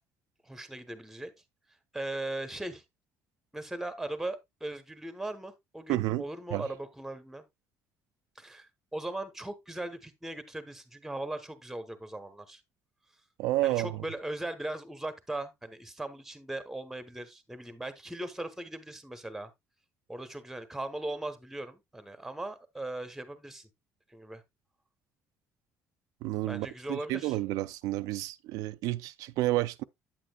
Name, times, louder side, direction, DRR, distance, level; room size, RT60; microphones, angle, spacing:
voice 1, 0.4-1.3 1.9-2.8 3.5-7.4 8.4-12.6 13.6-19.5 20.1-23.7 24.1-24.4 26.5-27.4, right 2 dB, 5° right, 1.0 m, -39 dB
voice 2, 5.9-6.2 6.5-6.7 13.4-14.0 26.2-29.8, right 17 dB, 90° right, 0.4 m, -30 dB
8.8 x 8.5 x 2.3 m
cardioid pair, 150°, 6 cm